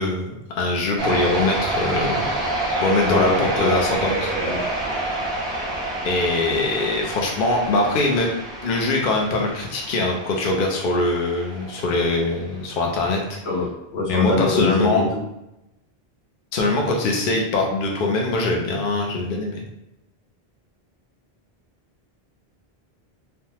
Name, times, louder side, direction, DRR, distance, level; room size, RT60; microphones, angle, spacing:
voice 1, 0.0-2.2 2.8-4.9 6.0-8.3 8.6-13.4 14.1-15.1 16.5-19.6, left 2 dB, 60° left, 0 dB, 0.7 m, -22 dB
sound 1, 1.0-12.4, right 2 dB, 30° right, 0.6 m, -28 dB
voice 2, 3.1-3.8 4.3-4.6 13.4-15.1, left 3 dB, 80° left, -3 dB, 1.0 m, -24 dB
3.4 x 2.1 x 2.8 m, 0.89 s
omnidirectional pair, 1.1 m